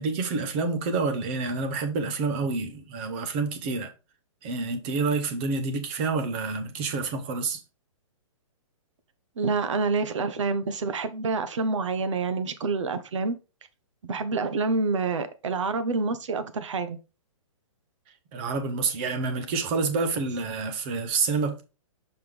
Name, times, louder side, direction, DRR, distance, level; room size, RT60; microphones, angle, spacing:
voice 1, 0.0-3.9 4.4-7.6 18.3-21.6, right 4 dB, 20° right, 0.7 m, -28 dB
voice 2, 9.4-13.4 14.0-17.0, right 4 dB, 60° right, 1.1 m, -27 dB
6.2 x 5.4 x 3.4 m
hypercardioid pair, 175°, 17 cm